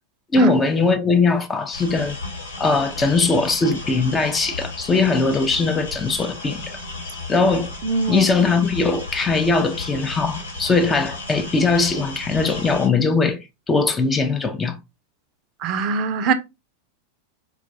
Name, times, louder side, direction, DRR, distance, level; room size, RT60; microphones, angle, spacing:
voice 1, 0.3-2.2 2.6-6.7 7.3-7.7 8.1-13.4 13.7-14.8, left 3 dB, 15° left, 0.5 m, -20 dB
sound 1, 1.7-12.9, left 2 dB, 75° left, 1.2 m, -34 dB
voice 2, 7.8-8.2 15.6-16.3, right 4 dB, 40° right, 0.5 m, -22 dB
4.4 x 2.3 x 2.6 m
figure-of-eight pair, 90°, 0 cm